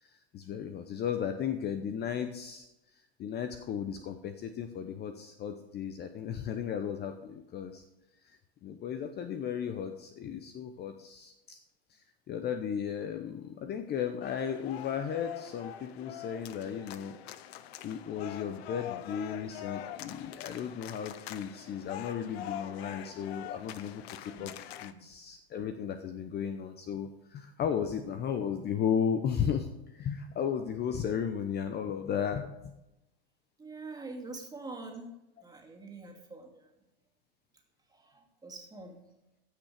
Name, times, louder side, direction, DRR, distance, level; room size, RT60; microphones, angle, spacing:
voice 1, 0.0-2.7 3.2-7.8 8.6-11.6 12.3-17.2 17.8-24.5 24.8-32.7, left 8 dB, 30° left, 8 dB, 0.8 m, -35 dB
sound 1, 14.2-24.9, left 12 dB, 65° left, 0.8 m, -44 dB
voice 2, 33.6-35.1 35.4-36.7 37.9-39.0, right 3 dB, 10° right, 1 dB, 2.5 m, -45 dB
14.5 x 6.3 x 5.0 m, 0.92 s
hypercardioid pair, 105°, 33 cm